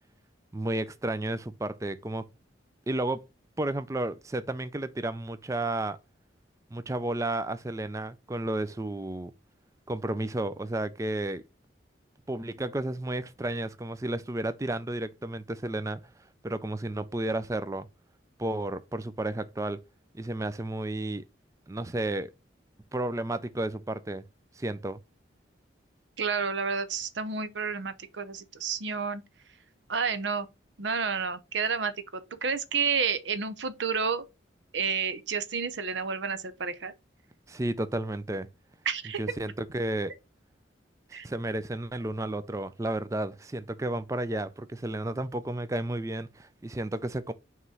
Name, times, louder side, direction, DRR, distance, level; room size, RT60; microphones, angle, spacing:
voice 1, 0.5-2.3 2.9-3.2 3.6-6.0 6.7-9.3 9.9-11.4 12.3-16.0 16.4-17.9 18.4-19.8 20.1-21.2 21.7-22.3 22.9-24.2 24.6-25.0 37.5-38.5 39.2-40.1 41.2-47.3, right 1 dB, 15° right, 0.4 m, -32 dB
voice 2, 26.2-29.2 29.9-30.5 30.8-34.2 34.7-36.9 38.9-39.2 41.1-41.3, right 5 dB, 75° right, 0.8 m, -30 dB
5.8 x 3.1 x 5.6 m
head